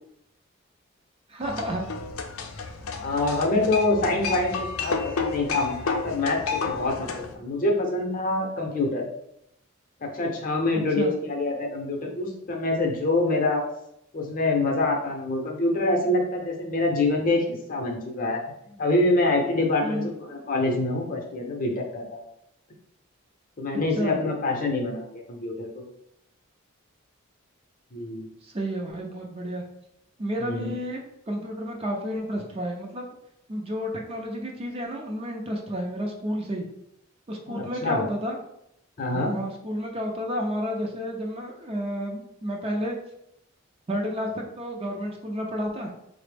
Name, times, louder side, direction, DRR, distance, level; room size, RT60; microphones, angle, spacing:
voice 1, 1.3-1.8 11.0-11.1 19.8-20.1 24.0-24.2 28.4-29.6 30.2-31.0 31.3-33.1 33.5-36.6 37.3-38.4 39.1-43.0 43.9-45.9, equal, 30° right, 1 dB, 0.5 m, -31 dB
sound 1, 1.4-7.3, left 5 dB, 90° left, 0.5 m, -31 dB
voice 2, 3.0-9.1 10.0-13.6 14.1-18.4 18.7-22.2 23.6-25.8 27.9-28.3 30.4-30.7 37.5-38.0 39.0-39.3, left 2 dB, 40° left, 1 dB, 0.6 m, -26 dB
4.0 x 2.0 x 3.3 m, 0.77 s
head